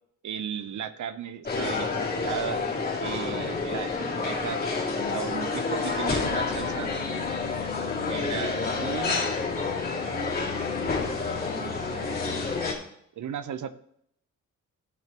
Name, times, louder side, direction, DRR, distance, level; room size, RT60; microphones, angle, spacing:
voice 1, 0.2-2.6 3.0-6.9 8.1-9.2 11.3-12.2 13.2-13.7, right 8 dB, 70° right, 12 dB, 0.8 m, -36 dB
sound 1, 1.5-12.7, left 4 dB, 30° left, 2.6 m, -29 dB
15.5 x 6.0 x 3.0 m, 0.70 s
cardioid pair, 120°, 31 cm